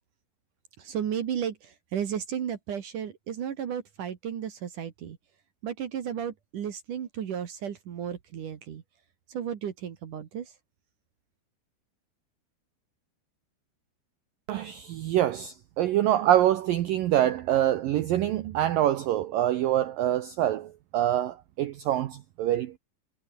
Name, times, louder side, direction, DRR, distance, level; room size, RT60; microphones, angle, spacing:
voice 1, 0.8-5.2 5.6-8.8 9.3-10.5, right 8 dB, 55° right, 2.7 m, -34 dB
voice 2, 14.5-22.8, right 12 dB, 85° right, 2.0 m, -25 dB
omnidirectional pair, 5.4 m